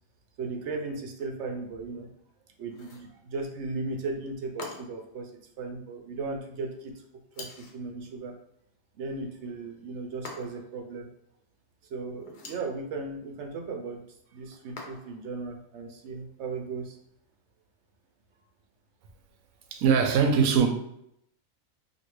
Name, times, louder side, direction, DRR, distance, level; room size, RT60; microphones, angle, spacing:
voice 1, 0.4-2.1 2.6-5.3 5.6-6.9 7.4-8.3 9.0-11.1 11.9-14.0 14.3-17.0, right 3 dB, 65° right, 0.8 m, -36 dB
sound 1, 2.7-3.1 4.6-5.1 7.3-7.8 10.2-10.8 12.2-12.7 14.8-15.3, left 3 dB, 60° left, 0.5 m, -44 dB
voice 2, 19.7-20.7, right 6 dB, 85° right, 1.0 m, -21 dB
3.0 x 2.7 x 3.0 m
omnidirectional pair, 1.4 m